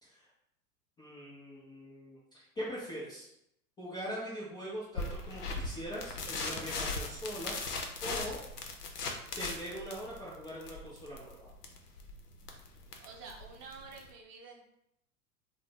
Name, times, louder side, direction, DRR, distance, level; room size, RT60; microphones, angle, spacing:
voice 1, 1.0-3.3 3.8-7.5 8.0-8.4 9.3-11.5, equal, 10° left, -8 dB, 0.3 m, -42 dB
sound 1, 5.0-14.1, left 3 dB, 85° left, 0.6 m, -39 dB
voice 2, 13.0-14.7, right 4 dB, 35° right, 1 dB, 0.6 m, -49 dB
2.6 x 2.0 x 3.5 m, 0.78 s
hypercardioid pair, 90°, 45 cm